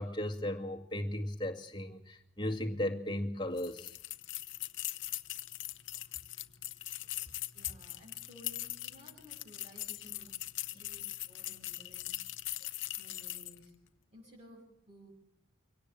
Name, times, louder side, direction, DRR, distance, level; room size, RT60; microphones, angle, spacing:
voice 1, 0.0-3.9 10.7-10.8, left 1 dB, 20° left, 3 dB, 2.1 m, -36 dB
sound 1, 3.6-13.6, left 16 dB, 65° left, 0.9 m, -41 dB
voice 2, 7.5-12.5 12.9-13.9 14.1-15.1, equal, 30° right, -4 dB, 6.3 m, -57 dB
24.5 x 17.5 x 7.7 m, 0.75 s
head